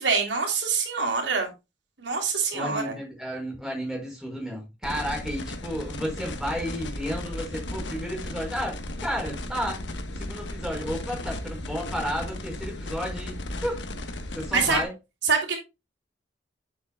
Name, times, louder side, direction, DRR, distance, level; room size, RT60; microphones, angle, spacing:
voice 1, 0.0-1.5 2.0-3.0 14.5-14.8 15.2-15.6, right 5 dB, 80° right, 3.2 m, -25 dB
voice 2, 2.5-9.8 10.2-13.3 13.6-13.8 14.3-14.9, equal, 5° right, 5.1 m, -32 dB
sound 1, 4.8-14.8, left 1 dB, 90° left, 1.3 m, -35 dB
9.5 x 7.8 x 2.3 m
head